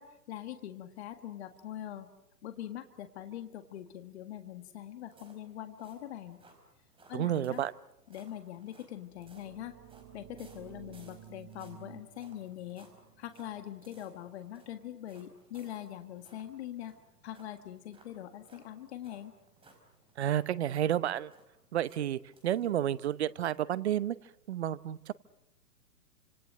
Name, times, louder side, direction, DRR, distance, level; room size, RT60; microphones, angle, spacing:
voice 1, 0.0-2.1 2.4-6.4 7.1-7.6 8.1-9.8 10.1-12.9 13.2-16.9 17.2-19.3, left 12 dB, 45° left, 8 dB, 1.8 m, -43 dB
sound 1, 5.0-23.2 23.5-23.7 24.1-24.2, right 3 dB, 10° right, 4.7 m, -62 dB
voice 2, 7.1-7.7 20.2-21.3 21.7-24.2 24.5-25.1, right 11 dB, 45° right, 18 dB, 0.9 m, -31 dB
sound 2, 9.0-14.6, right 11 dB, 30° right, 1.7 m, -54 dB
29.5 x 26.5 x 6.5 m, 0.81 s
figure-of-eight pair, 130°, 47 cm